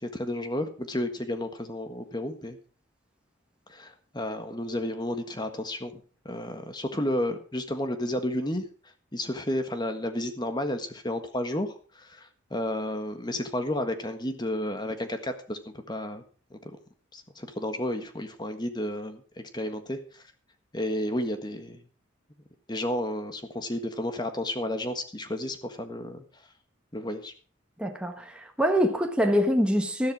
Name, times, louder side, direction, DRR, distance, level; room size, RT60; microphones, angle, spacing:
voice 1, 0.0-2.6 3.7-16.2 16.5-16.6 17.1-20.2 20.7-21.9 22.7-26.5 26.9-27.3, left 1 dB, 20° left, 1.5 m, -32 dB
voice 2, 27.8-30.1, equal, 5° right, 1.4 m, -25 dB
13.0 x 11.5 x 4.8 m
head